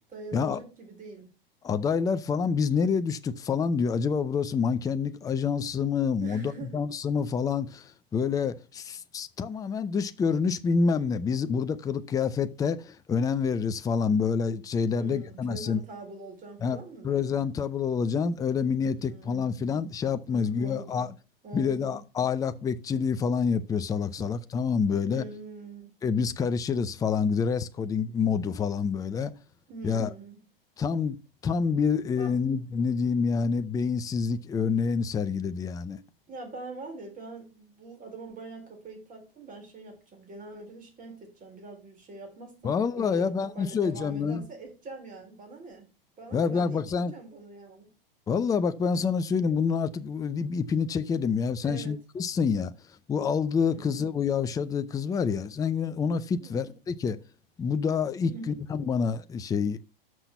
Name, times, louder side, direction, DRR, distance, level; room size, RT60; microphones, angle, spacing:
voice 1, 0.1-1.3 6.2-6.8 14.9-17.3 18.9-19.6 20.3-21.1 21.4-22.0 24.2-24.3 24.8-25.9 29.7-30.4 32.2-32.3 36.3-45.9 46.2-46.8 47.1-47.9 51.6-51.9 53.7-54.1 56.4-56.7 58.2-58.6, right 3 dB, 30° right, 3.9 m, -44 dB
voice 2, 1.6-15.8 16.6-16.8 17.0-21.1 21.5-25.2 26.0-29.3 29.8-30.1 30.8-31.2 31.4-36.0 42.6-44.4 46.3-47.1 48.3-52.7 53.1-57.2 57.6-59.8, left 6 dB, 10° left, 0.5 m, -27 dB
6.2 x 5.8 x 6.8 m
hypercardioid pair, 105°, 29 cm